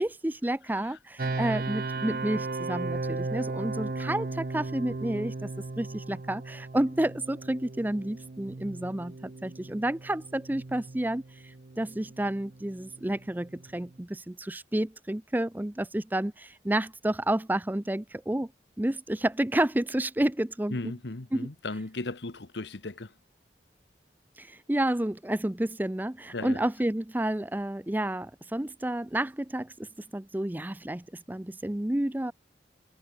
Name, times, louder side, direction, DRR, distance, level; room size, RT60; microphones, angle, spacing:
voice 1, 0.0-5.5 5.8-18.5 18.8-20.8 21.3-21.5 24.4-32.3, right 1 dB, 10° right, 0.5 m, -30 dB
sound 1, 1.2-14.0, right 3 dB, 55° right, 0.7 m, -36 dB
voice 2, 20.7-23.1 26.3-26.6, left 2 dB, 80° left, 1.3 m, -36 dB
head